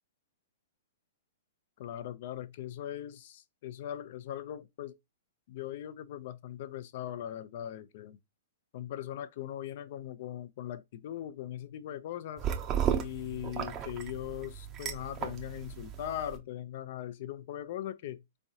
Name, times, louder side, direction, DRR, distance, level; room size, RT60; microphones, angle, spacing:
voice 1, 1.8-5.0 5.5-8.2 8.7-12.5 13.0-18.2, left 11 dB, 55° left, 0.5 m, -40 dB
sound 1, 12.4-16.4, right 9 dB, 25° right, 0.6 m, -35 dB
3.6 x 3.1 x 2.7 m
hypercardioid pair, 135°, 0 cm